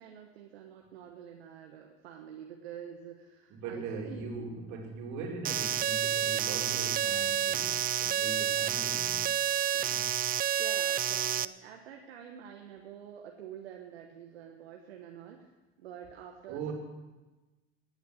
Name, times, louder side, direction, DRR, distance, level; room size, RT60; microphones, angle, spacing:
voice 1, 0.0-4.3 10.6-15.5 15.8-16.7, right 9 dB, 80° right, 2 dB, 1.2 m, -47 dB
voice 2, 3.5-9.3 9.7-10.1 16.5-16.7, right 4 dB, 60° right, 1 dB, 3.2 m, -40 dB
sound 1, 5.4-11.4, right 10 dB, 30° right, 0.4 m, -29 dB
19.0 x 8.2 x 6.3 m, 1.2 s
hypercardioid pair, 65°, 31 cm